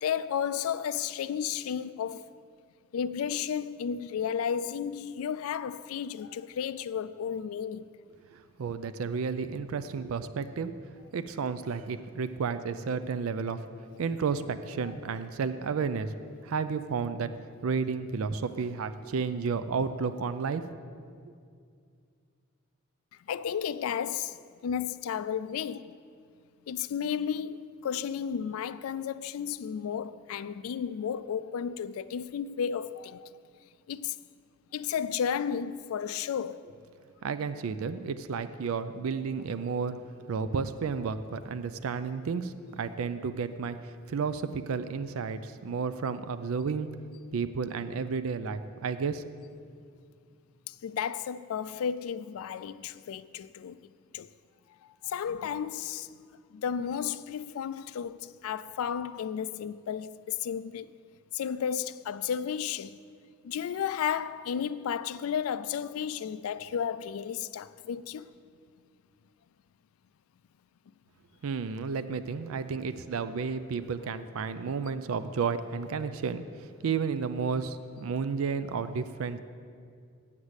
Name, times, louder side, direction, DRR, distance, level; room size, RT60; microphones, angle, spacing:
voice 1, 0.0-2.2 2.9-7.9 23.3-26.0 26.7-33.3 33.9-34.2 34.7-36.7 50.7-53.8 54.1-54.3 55.0-56.1 56.5-60.9 61.3-63.0 63.4-68.3, left 8 dB, 85° left, 0.3 m, -33 dB
voice 2, 8.3-10.7 11.1-13.6 14.0-16.1 16.4-17.3 17.6-20.7 37.2-40.0 40.3-46.9 47.3-49.2 71.4-79.4, right 5 dB, 80° right, 0.4 m, -32 dB
8.0 x 7.2 x 8.1 m
head